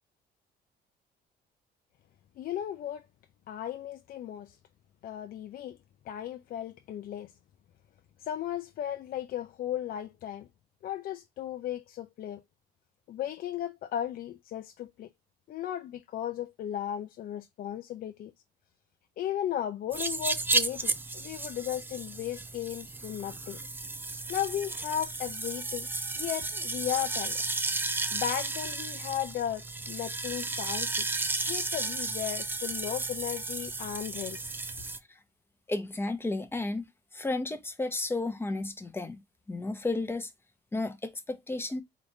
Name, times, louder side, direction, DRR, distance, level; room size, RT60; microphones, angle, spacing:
voice 1, 2.4-3.0 3.5-4.6 5.0-5.8 6.1-7.3 8.2-10.5 10.8-12.4 13.1-15.1 15.5-18.3 19.2-23.6 24.3-25.9 26.2-27.4 28.1-31.1 31.5-34.5, left 11 dB, 60° left, 0.6 m, -35 dB
sound 1, 19.9-35.0, right 3 dB, 10° right, 0.4 m, -33 dB
voice 2, 35.7-36.9 37.1-39.2 39.5-40.3 40.7-41.8, left 2 dB, 15° left, 0.9 m, -32 dB
4.0 x 3.1 x 3.1 m
cardioid pair, 110°, 17 cm